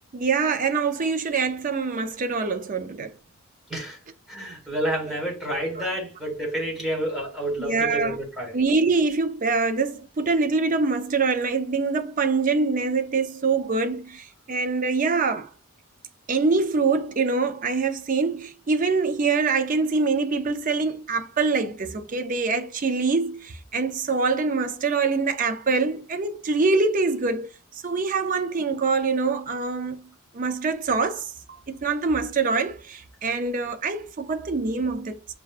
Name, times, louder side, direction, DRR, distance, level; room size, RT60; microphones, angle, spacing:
voice 1, 0.1-3.1 5.1-5.2 5.8-5.9 7.6-8.2 8.5-15.5 16.3-35.3, right 4 dB, 40° right, 0.5 m, -24 dB
voice 2, 4.3-8.6, right 1 dB, ahead, 1.6 m, -29 dB
6.4 x 2.2 x 2.4 m
head